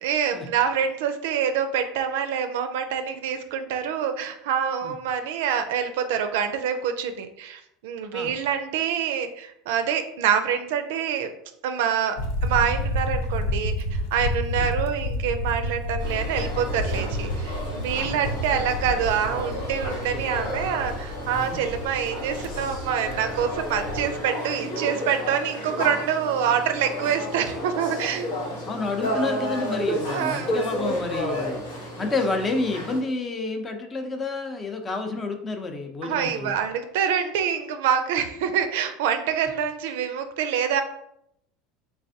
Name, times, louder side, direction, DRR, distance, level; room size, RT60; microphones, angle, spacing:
voice 1, 0.0-11.3 11.6-28.3 30.1-30.5 36.0-40.8, right 8 dB, 75° right, 8 dB, 0.4 m, -26 dB
sound 1, 12.2-24.2, left 1 dB, 75° left, 0.4 m, -30 dB
sound 2, 16.0-33.0, equal, 90° left, 1.0 m, -32 dB
voice 2, 28.7-31.6 32.0-36.6, left 3 dB, 30° left, 5 dB, 0.6 m, -29 dB
3.3 x 3.2 x 2.7 m, 0.77 s
hypercardioid pair, 90°, 0 cm